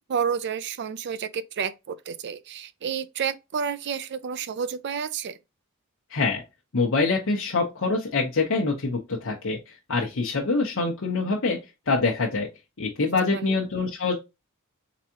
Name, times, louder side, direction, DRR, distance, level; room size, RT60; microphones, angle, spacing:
voice 1, 0.0-5.4 13.3-13.5, right 7 dB, 55° right, 0.4 m, -30 dB
voice 2, 6.1-6.4 6.7-11.6 11.9-12.5 12.8-14.2, left 3 dB, 65° left, 0.9 m, -25 dB
3.9 x 3.5 x 2.9 m
head